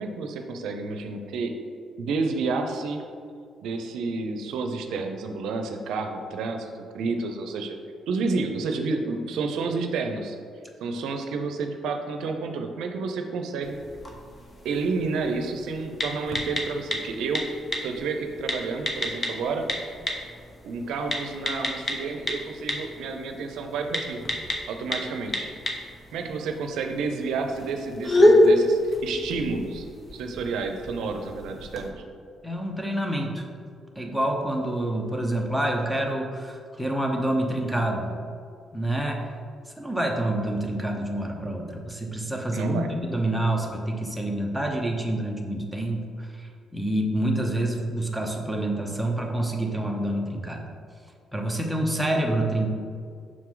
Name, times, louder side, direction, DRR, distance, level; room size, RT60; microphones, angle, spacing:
voice 1, 0.0-1.5 2.0-3.0 3.6-7.8 8.1-10.4 10.8-13.8 14.6-17.4 17.8-19.7 20.6-24.2 24.7-25.5 26.1-29.8 30.1-32.0 42.5-42.9, right 4 dB, 85° right, 5 dB, 0.6 m, -30 dB
sound 1, 13.6-31.9, left 1 dB, 30° left, 1.0 m, -28 dB
voice 2, 32.4-33.4 34.0-38.2 38.7-39.3 39.7-50.6 51.3-52.7, right 1 dB, ahead, 0 dB, 0.9 m, -27 dB
6.3 x 4.6 x 3.8 m, 2.2 s
cardioid pair, 90°, 0 cm